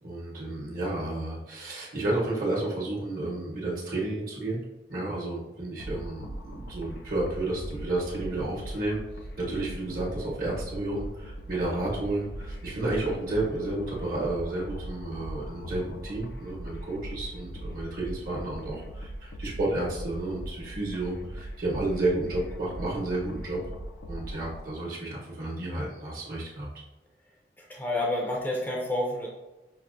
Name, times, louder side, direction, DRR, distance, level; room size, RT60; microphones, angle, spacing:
voice 1, 0.0-4.6 4.9-9.0 9.4-23.6 24.1-26.7, right 2 dB, 55° right, -4 dB, 0.8 m, -31 dB
sound 1, 5.8-24.6, right 1 dB, 70° left, 0.4 m, -40 dB
voice 2, 27.6-29.3, left 1 dB, 10° left, -3 dB, 0.4 m, -29 dB
5.7 x 2.1 x 2.5 m, 1.0 s
head